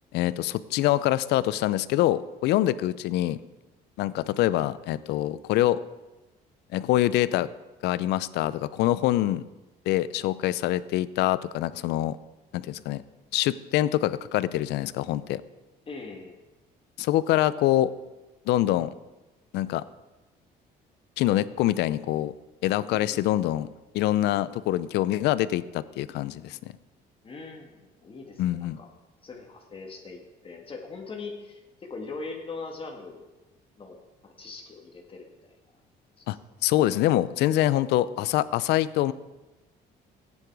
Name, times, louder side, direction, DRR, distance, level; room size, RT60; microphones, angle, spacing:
voice 1, 0.1-3.4 4.0-5.8 6.7-7.5 7.8-9.4 9.9-12.2 12.5-13.0 13.3-15.4 17.0-17.9 18.5-18.9 19.5-19.8 21.2-22.3 22.6-23.7 23.9-26.6 28.4-28.8 36.3-36.4 36.6-39.1, left 14 dB, 80° left, 17 dB, 0.6 m, -25 dB
voice 2, 15.9-16.4 22.9-23.2 27.2-28.9 29.2-33.2 33.8-35.5 36.2-36.3, left 3 dB, 30° left, 2 dB, 1.8 m, -41 dB
14.5 x 9.9 x 4.8 m, 1.1 s
cardioid pair, 110°, 17 cm